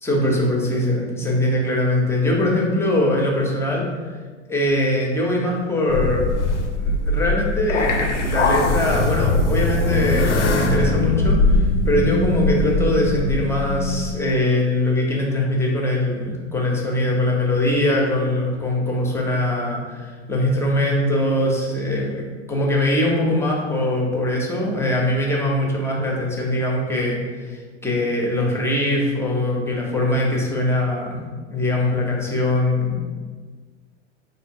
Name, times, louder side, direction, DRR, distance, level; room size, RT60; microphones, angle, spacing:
voice 1, 0.0-3.8 4.5-6.3 6.8-31.2 31.5-33.0, left 1 dB, 5° left, -2 dB, 0.6 m, -22 dB
sound 1, 5.9-14.1, left 2 dB, 85° left, 0.6 m, -21 dB
4.4 x 2.7 x 2.6 m, 1.5 s
hypercardioid pair, 95°, 36 cm